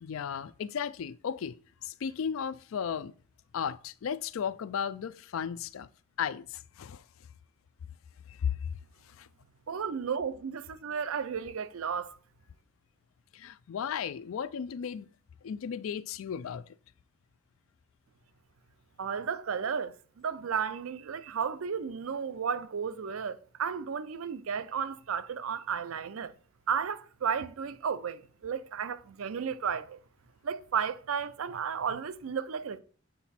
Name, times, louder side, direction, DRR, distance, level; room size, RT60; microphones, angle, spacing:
voice 1, 0.0-1.5 1.8-3.1 3.5-5.9 6.2-7.0 8.3-8.7 9.1-9.3 13.3-15.1 15.4-16.8, left 7 dB, 80° left, 0.4 m, -35 dB
voice 2, 9.7-12.2 19.0-26.3 26.7-30.0 30.4-32.8, right 6 dB, 85° right, 0.5 m, -33 dB
7.7 x 4.0 x 4.2 m
head